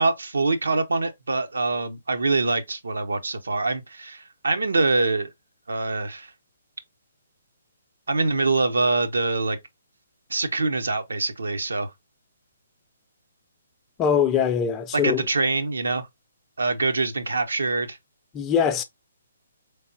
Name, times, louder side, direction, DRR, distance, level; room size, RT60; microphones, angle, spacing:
voice 1, 0.0-5.3 5.7-6.3 8.1-9.6 10.3-11.9 14.9-16.1 16.6-18.0, right 3 dB, 75° right, 0.8 m, -24 dB
voice 2, 14.0-15.3 18.3-18.8, left 7 dB, 20° left, 0.6 m, -22 dB
4.2 x 3.4 x 2.7 m
figure-of-eight pair, 135°, 0 cm